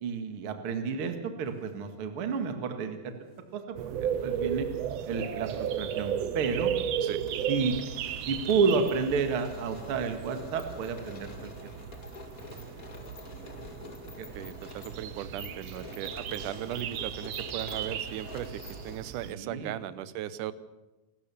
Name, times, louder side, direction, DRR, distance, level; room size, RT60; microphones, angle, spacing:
voice 1, 0.0-3.0 3.5-4.7 5.1-6.7 7.5-7.7 8.3-11.5 14.2-14.3 19.2-19.7, right 5 dB, 45° right, 7 dB, 2.3 m, -30 dB
sound 1, 3.1-3.4 4.4-5.2 5.5-5.6 6.0-19.0, left 2 dB, 30° left, 2.1 m, -46 dB
sound 2, 3.8-19.3, right 9 dB, 90° right, 1.4 m, -35 dB
voice 2, 14.3-20.5, right 12 dB, 70° right, 15 dB, 2.2 m, -37 dB
28.0 x 13.5 x 7.1 m, 1.1 s
omnidirectional pair, 4.3 m